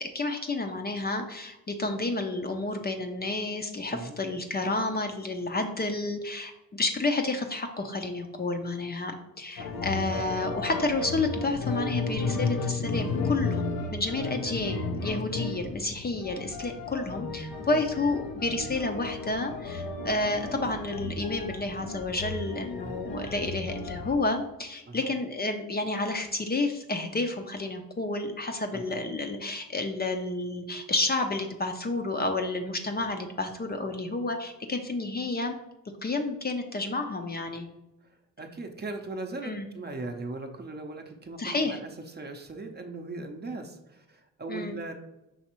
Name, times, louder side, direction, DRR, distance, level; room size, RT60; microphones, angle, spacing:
voice 1, 0.0-35.6 36.0-37.7 39.4-39.7 41.4-41.8 44.5-44.8, left 2 dB, 30° left, 5 dB, 0.5 m, -30 dB
sound 1, 9.6-24.1, left 3 dB, 90° left, 0.6 m, -33 dB
voice 2, 38.4-44.9, right 2 dB, 30° right, 4 dB, 0.7 m, -39 dB
5.5 x 3.2 x 3.0 m, 0.93 s
cardioid pair, 75°, 35 cm